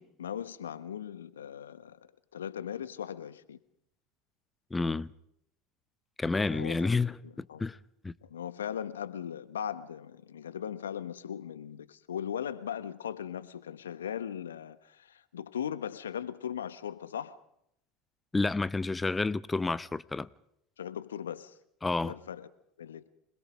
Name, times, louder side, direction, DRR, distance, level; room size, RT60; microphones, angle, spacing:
voice 1, 0.0-2.0 2.3-3.6 6.5-6.9 7.2-7.6 8.2-17.4 20.8-21.5 22.0-22.5 22.8-23.1, left 9 dB, 80° left, 1.3 m, -38 dB
voice 2, 4.7-5.1 6.2-7.8 8.0-8.1 18.3-20.3 21.8-22.1, left 3 dB, 15° left, 0.9 m, -30 dB
26.0 x 20.5 x 5.2 m
hypercardioid pair, 75°, 0 cm